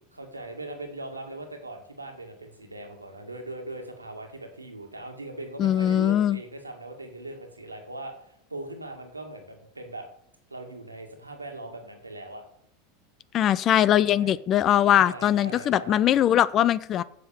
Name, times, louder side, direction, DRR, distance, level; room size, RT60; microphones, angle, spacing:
voice 1, 0.1-10.1 10.5-12.4 14.0-14.3 14.9-16.0, right 2 dB, 90° right, 4 dB, 1.9 m, -40 dB
voice 2, 5.6-6.4 13.3-17.0, left 11 dB, 40° left, 18 dB, 0.5 m, -21 dB
7.7 x 7.5 x 7.1 m, 0.70 s
figure-of-eight pair, 80°, 0 cm